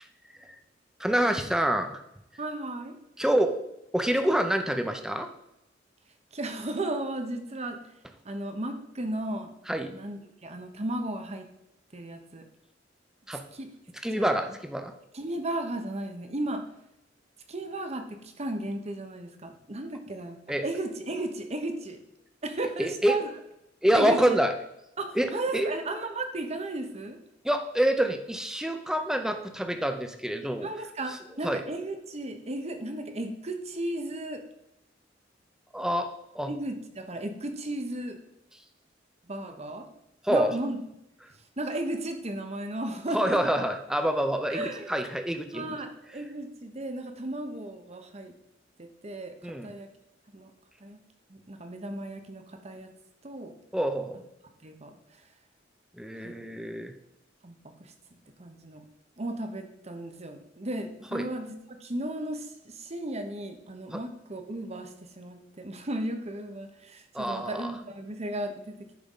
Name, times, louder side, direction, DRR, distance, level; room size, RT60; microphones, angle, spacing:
voice 1, 1.0-1.9 3.2-3.6 3.9-5.3 9.7-10.0 13.3-13.4 14.0-14.9 20.5-20.6 22.8-23.2 23.8-24.5 25.2-25.7 27.4-30.7 31.4-31.6 35.7-36.1 36.3-36.5 40.3-40.5 43.1-45.7 49.4-49.7 53.7-54.2 56.0-56.9 61.1-61.3 63.9-64.0 67.1-67.7, right 1 dB, 5° right, 6 dB, 0.7 m, -26 dB
voice 2, 2.4-3.0 6.3-7.8 8.2-9.6 9.9-11.5 11.9-12.4 13.3-13.7 14.1-14.3 15.1-16.6 17.5-22.0 22.4-23.3 23.9-24.4 25.0-27.2 30.6-34.4 36.5-38.2 39.3-39.9 40.3-40.8 41.6-43.4 44.5-45.0 45.5-48.3 48.8-49.9 50.3-50.5 50.8-51.0 51.3-52.9 53.2-53.5 54.6-55.0 56.2-56.3 57.4-57.5 57.8-57.9 58.4-58.8 59.2-68.9, right 1 dB, 35° right, 6 dB, 1.0 m, -35 dB
10.5 x 3.9 x 5.5 m, 0.83 s
head